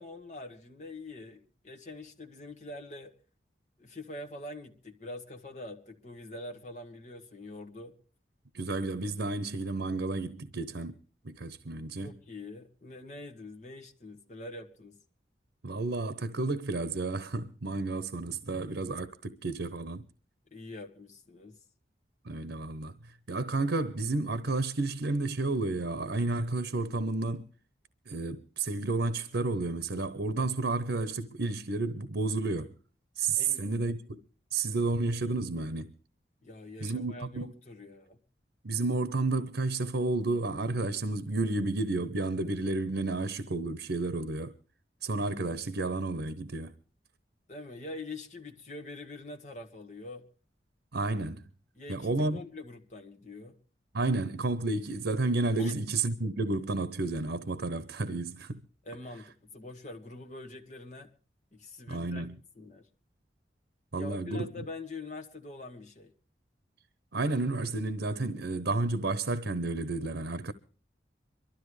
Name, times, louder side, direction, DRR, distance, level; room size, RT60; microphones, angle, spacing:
voice 1, 0.0-3.1 3.8-7.9 12.0-15.0 20.5-21.6 33.3-33.8 36.4-38.2 47.5-50.3 51.8-53.6 55.6-55.8 58.9-61.1 61.5-62.9 63.9-66.1, left 2 dB, 40° left, 1.8 m, -44 dB
voice 2, 8.5-11.0 11.2-12.1 15.6-20.0 22.2-23.0 23.3-27.5 28.1-32.7 33.2-34.2 34.5-35.9 36.8-37.5 38.6-44.6 45.0-46.7 50.9-51.4 51.9-52.4 53.9-58.6 61.9-62.4 63.9-64.7 67.1-70.5, right 3 dB, 85° right, 0.9 m, -31 dB
23.5 x 13.0 x 3.2 m
head